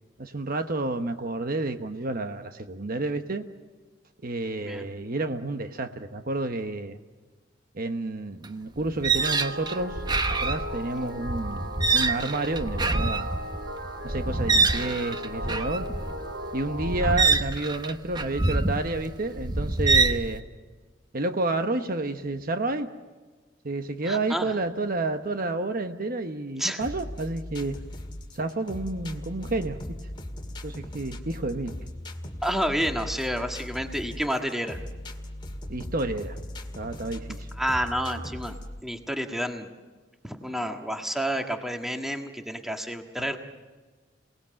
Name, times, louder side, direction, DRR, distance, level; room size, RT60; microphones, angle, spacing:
voice 1, 0.2-3.4 4.2-7.0 7.7-10.0 10.4-13.4 14.0-15.8 16.5-20.4 21.1-22.9 23.6-27.7 28.3-29.8 30.6-31.7 35.7-36.4 36.8-37.5 43.2-43.3, right 2 dB, 45° right, 8 dB, 1.0 m, -30 dB
sound 1, 8.4-8.5 8.8-20.3, right 3 dB, 20° right, 0.9 m, -26 dB
sound 2, 9.1-17.1, equal, 65° right, 3.2 m, -37 dB
voice 2, 24.0-24.5 26.6-26.8 32.4-34.8 37.6-38.5 38.8-39.7 40.2-43.4, equal, ahead, 4 dB, 1.6 m, -29 dB
sound 3, 26.8-38.8, left 1 dB, 25° left, 1.9 m, -39 dB
28.0 x 19.0 x 7.7 m, 1.4 s
head